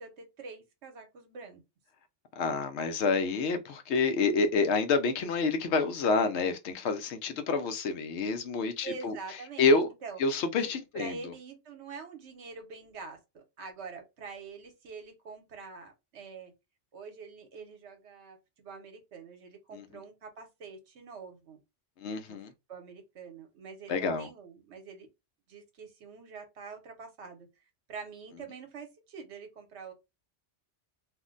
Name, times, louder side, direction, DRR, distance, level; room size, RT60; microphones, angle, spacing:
voice 1, 0.0-1.6 8.8-10.2 10.9-16.5 16.9-21.6 22.3-22.4 22.7-25.1 25.5-27.5 27.9-29.9, right 5 dB, 70° right, 1.0 m, -45 dB
voice 2, 2.4-9.2 9.6-9.9 10.2-11.2 19.7-19.8 22.0-22.5 23.9-24.3, left 4 dB, 75° left, 0.8 m, -28 dB
2.5 x 2.1 x 3.7 m
omnidirectional pair, 1.2 m